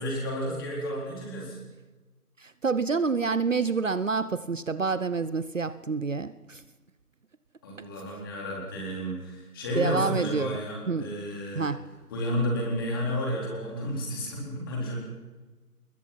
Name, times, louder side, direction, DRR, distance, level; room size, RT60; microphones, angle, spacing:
voice 1, 0.0-1.6 7.6-11.7 12.1-15.0, equal, 15° left, 3.9 m, -31 dB
voice 2, 2.4-6.6 9.8-10.6 10.9-11.1 11.6-11.8, right 4 dB, 55° right, 0.9 m, -28 dB
25.0 x 21.5 x 5.8 m
figure-of-eight pair, 170°, 45 cm